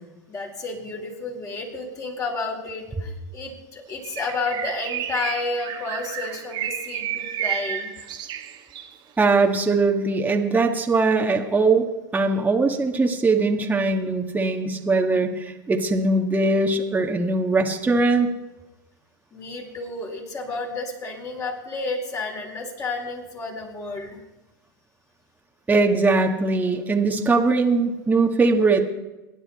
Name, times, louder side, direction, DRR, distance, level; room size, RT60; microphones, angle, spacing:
voice 1, 0.3-8.1 19.3-24.2, left 3 dB, 30° left, 0 dB, 4.3 m, -31 dB
Bird, 4.0-9.0, right 11 dB, 40° right, 1.6 m, -31 dB
voice 2, 9.2-18.3 25.7-28.8, right 3 dB, 15° right, 2 dB, 1.7 m, -21 dB
24.0 x 10.5 x 4.2 m, 1.0 s
hypercardioid pair, 90°, 11 cm